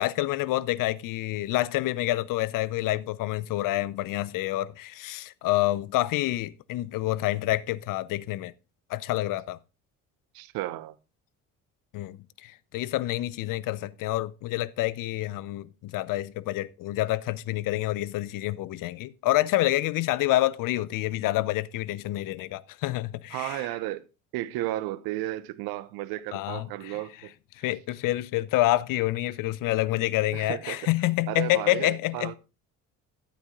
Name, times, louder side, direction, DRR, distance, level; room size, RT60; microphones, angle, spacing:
voice 1, 0.0-8.5 8.9-9.6 11.9-23.7 26.3-27.0 27.6-32.4, left 16 dB, 50° left, 0.7 m, -28 dB
voice 2, 10.3-10.9 23.3-24.0 24.3-27.3 30.3-30.9 31.3-32.3, right 15 dB, 55° right, 0.8 m, -33 dB
12.5 x 8.1 x 3.7 m
figure-of-eight pair, 55°, 43 cm